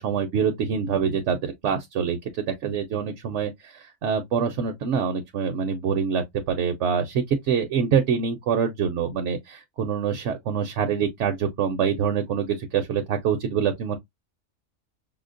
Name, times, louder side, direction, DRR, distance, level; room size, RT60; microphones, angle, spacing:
voice 1, 0.0-14.0, right 7 dB, 70° right, 0.9 m, -25 dB
5.5 x 2.0 x 2.5 m
omnidirectional pair, 1.3 m